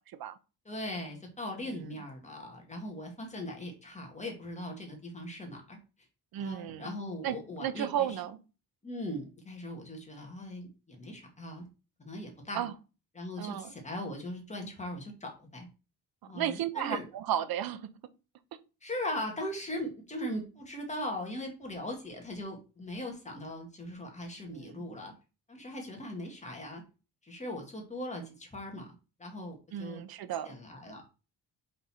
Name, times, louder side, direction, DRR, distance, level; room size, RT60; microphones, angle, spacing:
voice 1, 0.1-0.4 1.6-2.0 6.3-6.9 7.2-8.4 12.5-12.7 13.4-13.7 16.3-17.9 24.5-24.9 29.7-30.6, right 10 dB, 75° right, 0.8 m, -34 dB
voice 2, 0.7-5.8 6.4-8.2 8.8-11.7 12.0-12.7 13.1-15.7 16.3-17.1 18.8-25.1 25.5-26.8 27.2-28.9 29.2-30.0 30.5-31.0, left 1 dB, 20° left, 2.0 m, -39 dB
5.3 x 4.1 x 4.3 m
cardioid pair, 125°, 36 cm